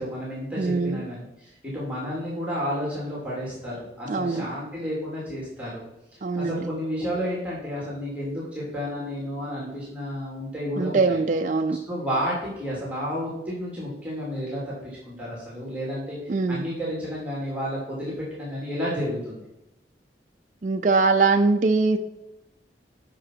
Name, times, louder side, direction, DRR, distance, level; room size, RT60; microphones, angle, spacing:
voice 1, 0.0-5.8 6.1-11.2 11.9-19.5, equal, 10° right, -6 dB, 2.5 m, -31 dB
voice 2, 0.6-1.0 4.1-4.5 6.2-6.7 10.8-11.8 16.3-16.6 20.6-22.0, right 3 dB, 45° right, 5 dB, 0.4 m, -22 dB
9.8 x 6.0 x 4.5 m, 0.88 s
head